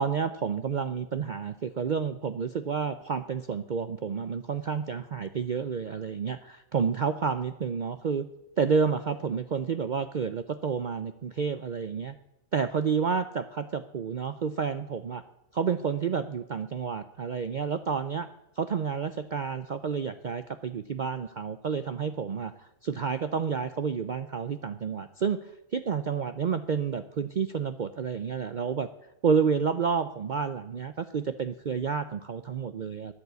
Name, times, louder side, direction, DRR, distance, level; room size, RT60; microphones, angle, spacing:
voice 1, 0.0-8.3 8.6-12.2 12.5-15.2 15.5-18.3 18.6-22.5 22.8-25.4 25.7-28.9 29.2-33.1, right 6 dB, 65° right, 10 dB, 0.4 m, -30 dB
14.5 x 11.0 x 8.1 m, 0.92 s
omnidirectional pair, 1.5 m